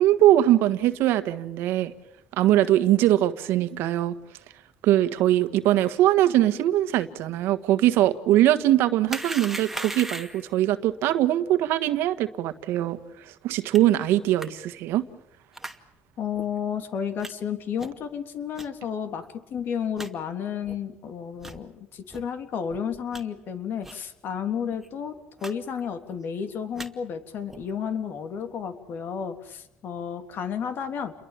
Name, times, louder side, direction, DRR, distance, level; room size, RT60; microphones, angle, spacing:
voice 1, 0.0-1.9 2.4-4.1 4.8-13.0 13.4-15.0, right 13 dB, 80° right, 11 dB, 1.6 m, -21 dB
sound 1, 9.1-10.5 13.7-13.8 14.4-14.5 15.5-15.8 16.3-16.4 17.2-17.3 17.8-18.0 18.5-18.7 19.2-19.3 19.6-19.7 20.0-20.1 20.6-20.8 21.4-21.6 22.1-22.2 22.7-23.2 23.8-24.0 24.3-24.4 24.7-24.9 25.4-25.5 25.8-26.2 26.6-26.9 27.5-27.7, right 2 dB, 5° right, 2.3 m, -37 dB
voice 2, 16.2-25.2 25.4-31.1, left 7 dB, 60° left, 7 dB, 3.3 m, -32 dB
30.0 x 22.5 x 7.6 m, 0.81 s
cardioid pair, 100°, 4 cm